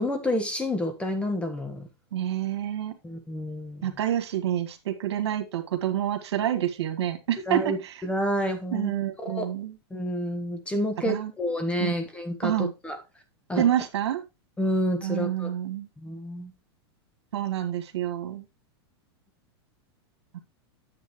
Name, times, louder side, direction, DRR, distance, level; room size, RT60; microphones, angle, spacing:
voice 1, 0.0-1.9 3.0-3.9 7.5-9.5 9.9-13.0 13.5-13.6 14.6-15.5 16.0-16.5, left 1 dB, 10° left, 1.6 m, -29 dB
voice 2, 2.1-2.9 3.8-8.0 8.7-9.7 11.1-11.3 11.8-12.0 12.4-12.7 13.6-14.2 15.0-15.9 17.3-18.4 20.3-20.4, right 11 dB, 80° right, 2.0 m, -28 dB
9.7 x 7.8 x 3.2 m
supercardioid pair, 135°, 14 cm